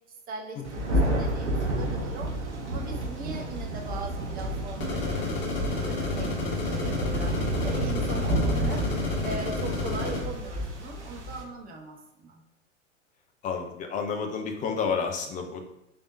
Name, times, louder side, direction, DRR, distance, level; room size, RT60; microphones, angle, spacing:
voice 1, 0.3-2.3 2.6-12.4, right 3 dB, 25° right, 2 dB, 0.8 m, -40 dB
Thunder, 0.6-11.4, right 1 dB, 70° right, 1.4 m, -30 dB
sound 1, 4.8-10.2, left 2 dB, 55° left, 1.2 m, -30 dB
voice 2, 13.4-15.6, left 5 dB, 20° left, 4 dB, 0.6 m, -30 dB
4.4 x 3.4 x 2.6 m, 0.89 s
figure-of-eight pair, 85°, 36 cm